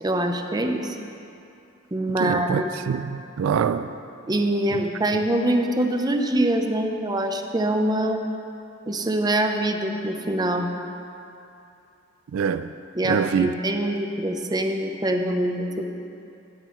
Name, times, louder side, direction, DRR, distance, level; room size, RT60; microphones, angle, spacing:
voice 1, 0.0-1.0 1.9-2.7 4.3-8.2 8.9-10.7 12.9-15.8, right 1 dB, 20° right, 0.6 m, -24 dB
voice 2, 2.2-3.9 12.3-12.7 13.1-13.5, right 7 dB, 90° right, 0.3 m, -24 dB
18.0 x 7.4 x 3.1 m
head